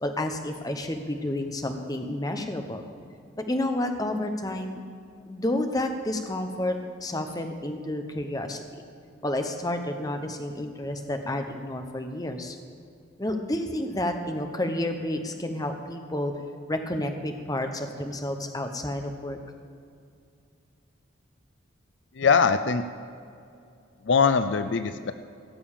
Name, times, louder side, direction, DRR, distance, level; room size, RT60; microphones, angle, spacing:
voice 1, 0.0-2.8 3.4-4.8 5.3-8.8 9.2-12.6 13.2-16.3 16.7-19.4, left 1 dB, 20° left, 5 dB, 0.9 m, -30 dB
voice 2, 22.2-22.8 24.1-25.1, left 5 dB, 65° left, 11 dB, 0.5 m, -22 dB
16.0 x 7.0 x 7.3 m, 2.4 s
head